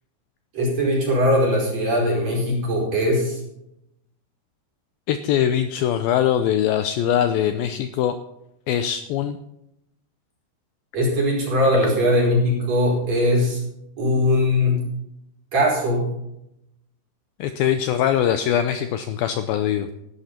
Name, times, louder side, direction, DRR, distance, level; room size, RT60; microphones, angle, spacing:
voice 1, 0.5-3.4 10.9-13.6 14.0-14.8 15.5-16.1, left 1 dB, 40° right, -3 dB, 5.8 m, -20 dB
voice 2, 5.1-8.2 8.7-9.4 17.4-19.9, left 10 dB, 85° left, 9 dB, 2.1 m, -22 dB
16.5 x 12.0 x 4.4 m, 0.83 s
omnidirectional pair, 5.0 m